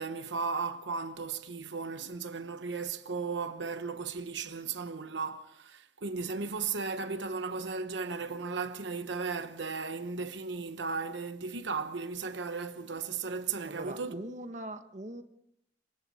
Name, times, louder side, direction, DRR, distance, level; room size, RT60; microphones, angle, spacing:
voice 1, 0.0-14.2, right 4 dB, 80° right, 1.0 m, -36 dB
voice 2, 13.7-15.2, right 1 dB, 40° right, 1.3 m, -41 dB
27.0 x 23.5 x 4.3 m
head